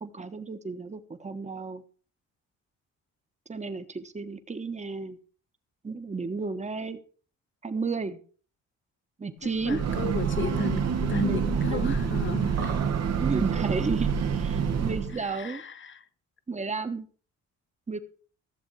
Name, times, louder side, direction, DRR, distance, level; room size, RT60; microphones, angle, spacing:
voice 1, 0.0-1.8 3.5-5.2 5.8-7.0 7.6-8.2 9.2-9.8 11.3-11.4 11.7-11.9 13.2-15.6 16.5-17.1 17.9-18.0, right 4 dB, 25° right, 1.3 m, -32 dB
voice 2, 9.4-12.9 15.1-16.1, left 6 dB, 40° left, 1.1 m, -35 dB
Breathing / Train, 9.5-15.2, right 6 dB, 60° right, 1.4 m, -27 dB
15.0 x 7.2 x 4.7 m
cardioid pair, 90°, 30 cm